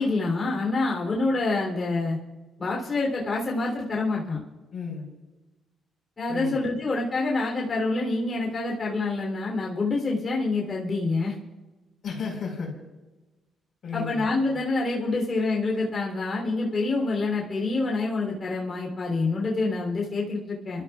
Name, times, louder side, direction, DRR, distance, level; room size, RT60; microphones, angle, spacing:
voice 1, 0.0-2.2 2.6-4.4 6.2-11.3 13.9-20.8, left 3 dB, 35° left, -2 dB, 3.4 m, -27 dB
voice 2, 4.7-5.1 6.3-6.7 12.0-12.7 13.8-14.3, left 5 dB, 60° left, 1 dB, 4.6 m, -33 dB
29.5 x 13.5 x 2.5 m, 1.1 s
cardioid pair, 90°, 0 cm